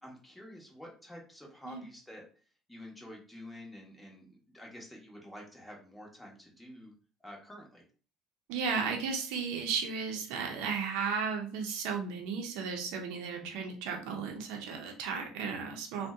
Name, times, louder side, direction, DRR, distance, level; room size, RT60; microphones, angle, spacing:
voice 1, 0.0-2.2 2.7-6.9 7.2-7.8, left 1 dB, 5° left, -2 dB, 1.0 m, -49 dB
voice 2, 8.5-16.1, right 5 dB, 80° right, 2 dB, 0.6 m, -34 dB
2.6 x 2.1 x 3.5 m, 0.39 s
supercardioid pair, 105°, 0 cm